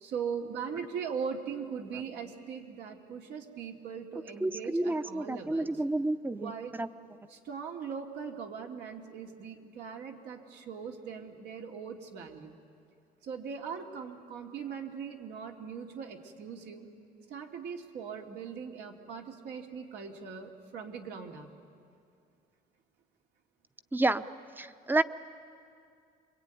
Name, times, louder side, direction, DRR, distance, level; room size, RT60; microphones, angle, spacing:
voice 1, 0.0-5.7 6.3-6.7 7.3-12.5 13.2-16.9 17.3-21.5, right 6 dB, 75° right, 1 dB, 2.7 m, -40 dB
voice 2, 4.4-6.9 23.9-24.2 24.6-25.0, right 2 dB, 10° right, 12 dB, 0.8 m, -30 dB
27.0 x 23.0 x 9.4 m, 2.4 s
cardioid pair, 110°, 17 cm